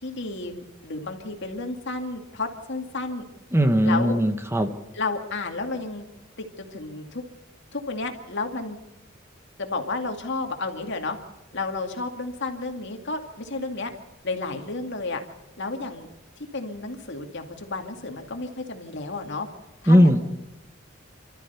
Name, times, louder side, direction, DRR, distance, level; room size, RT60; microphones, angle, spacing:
voice 1, 0.0-3.2 3.8-4.2 4.9-6.0 6.4-7.2 7.7-8.8 9.6-11.2 11.5-13.9 14.2-15.2 15.6-16.1 16.5-19.5 19.8-20.2, left 3 dB, 60° left, 4 dB, 2.3 m, -32 dB
voice 2, 3.5-4.7 19.9-20.2, equal, 15° right, 7 dB, 1.2 m, -18 dB
29.5 x 13.0 x 6.9 m, 0.98 s
head